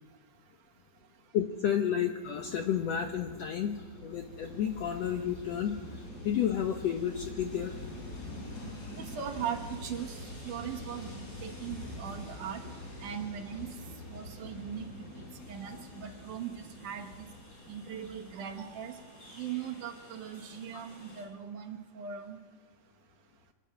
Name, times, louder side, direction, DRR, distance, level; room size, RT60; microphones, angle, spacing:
voice 1, 1.3-5.8 6.2-7.8, left 9 dB, 70° left, 5 dB, 1.6 m, -31 dB
Train, 2.2-21.2, left 1 dB, 25° left, 5.1 m, -45 dB
voice 2, 9.1-12.6 13.0-13.7 14.1-15.0 15.5-17.3 17.7-19.0 19.4-22.4, right 8 dB, 65° right, 3 dB, 2.7 m, -39 dB
27.0 x 11.0 x 8.9 m, 1.4 s
omnidirectional pair, 4.1 m